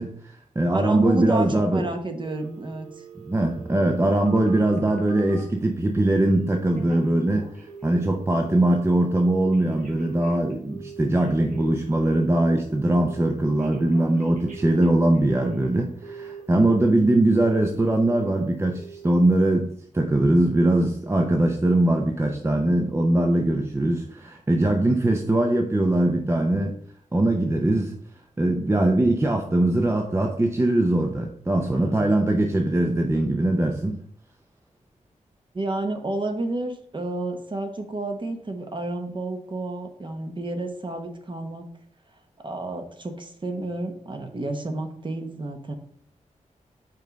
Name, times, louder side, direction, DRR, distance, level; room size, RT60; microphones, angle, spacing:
voice 1, 0.0-1.9 3.2-26.7 27.1-27.9 28.4-34.0, right 1 dB, 20° right, 2 dB, 0.6 m, -21 dB
voice 2, 0.7-3.0 31.7-32.1 35.5-41.7 42.4-45.7, right 2 dB, 35° right, 5 dB, 1.0 m, -30 dB
Telephone, 2.2-5.5 6.1-6.5 6.8-8.1 8.4-8.8 9.2-12.6 12.9-13.3 13.6-15.7 16.0-16.9 17.2-17.6 18.0-18.4 18.7-19.1 19.5-19.6, right 5 dB, 85° right, 1.3 m, -43 dB
5.3 x 4.0 x 5.2 m, 0.63 s
wide cardioid pair, 85°, 13 cm